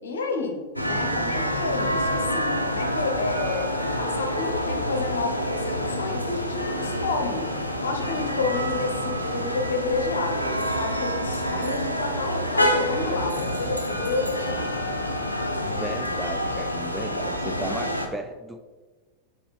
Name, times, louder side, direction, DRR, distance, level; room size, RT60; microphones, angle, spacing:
voice 1, 0.0-3.7 4.0-7.5 7.8-14.8, left 3 dB, 65° left, 5 dB, 1.0 m, -30 dB
sound 1, 0.8-18.1, equal, 85° left, 0.6 m, -27 dB
voice 2, 15.6-18.6, right 1 dB, 5° right, 6 dB, 0.4 m, -35 dB
6.9 x 3.9 x 4.2 m, 1.3 s
figure-of-eight pair, 90°, 0 cm